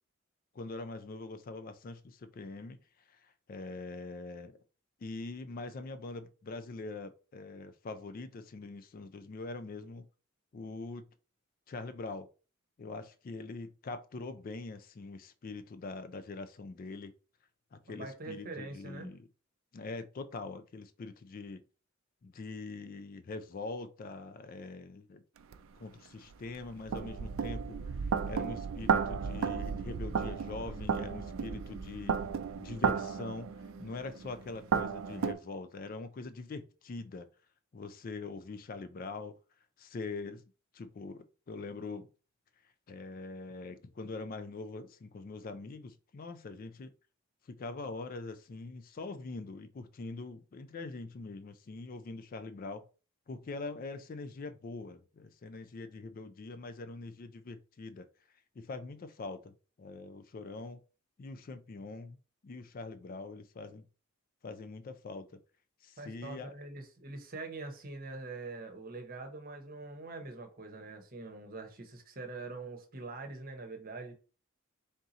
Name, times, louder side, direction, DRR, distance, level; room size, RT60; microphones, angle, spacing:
voice 1, 0.5-2.8 3.1-4.6 5.0-10.1 10.5-11.1 11.7-12.3 12.8-17.1 17.7-19.3 19.7-21.6 22.2-25.2 25.8-32.2 32.6-37.3 37.7-39.4 39.8-40.4 40.7-42.1 42.9-46.9 47.5-52.8 53.3-58.1 58.6-59.5 59.8-60.8 61.2-62.2 62.4-63.9 64.4-65.4 65.8-66.5, left 3 dB, 40° left, 0.4 m, -43 dB
voice 2, 17.9-19.1 66.0-74.1, right 3 dB, 45° right, 0.9 m, -44 dB
sound 1, 25.5-25.6 26.3-35.3, right 6 dB, 65° right, 0.4 m, -33 dB
3.6 x 2.7 x 3.9 m
head